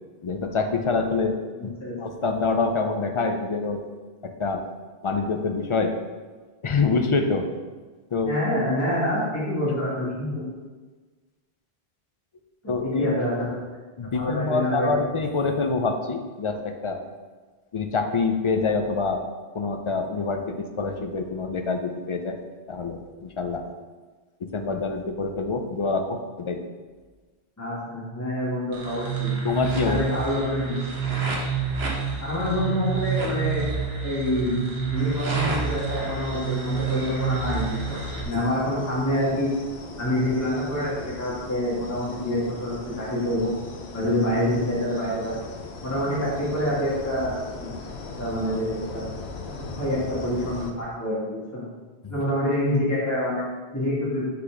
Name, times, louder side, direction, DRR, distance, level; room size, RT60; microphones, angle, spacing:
voice 1, 0.2-1.7 2.0-3.8 4.2-4.6 5.0-5.9 6.6-7.5 8.1-8.3 12.7-13.1 14.0-17.0 17.7-19.3 19.5-22.4 22.7-23.7 24.4-26.6 29.4-30.0 38.3-38.4, left 4 dB, 45° left, 5 dB, 0.4 m, -26 dB
voice 2, 1.5-2.0 8.2-10.4 12.8-13.3 14.1-14.9 27.6-29.3 29.8-30.8 32.2-33.6 34.0-38.0 38.2-39.5 40.0-43.5 43.9-45.3 45.8-47.3 47.6-47.7 48.2-49.0 49.8-51.6 52.1-53.4 53.7-54.2, left 1 dB, 15° left, -8 dB, 1.5 m, -26 dB
sound 1, 28.7-38.2, right 6 dB, 75° right, 1.3 m, -28 dB
sound 2, 35.0-50.7, left 4 dB, 90° left, 1.0 m, -39 dB
5.6 x 4.1 x 4.9 m, 1.4 s
omnidirectional pair, 1.1 m